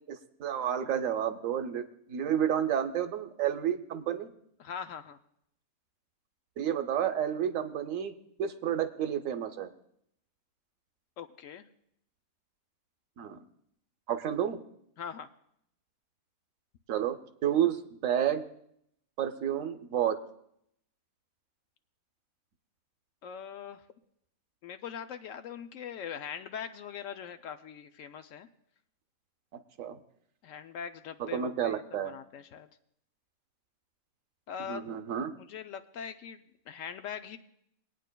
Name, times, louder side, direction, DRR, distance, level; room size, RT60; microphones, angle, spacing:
voice 1, 0.1-4.3 6.6-8.1 8.4-9.7 13.2-13.4 14.1-14.6 16.9-17.2 17.4-18.4 19.2-20.2 29.8-30.0 31.3-32.1 34.7-35.3, right 9 dB, 70° right, 9 dB, 1.0 m, -30 dB
voice 2, 4.6-5.2 11.2-11.7 15.0-15.3 23.2-23.9 24.6-28.5 30.4-32.7 34.5-34.9 35.3-37.4, left 7 dB, 70° left, 9 dB, 0.9 m, -42 dB
25.0 x 9.2 x 2.2 m, 0.73 s
omnidirectional pair, 1.5 m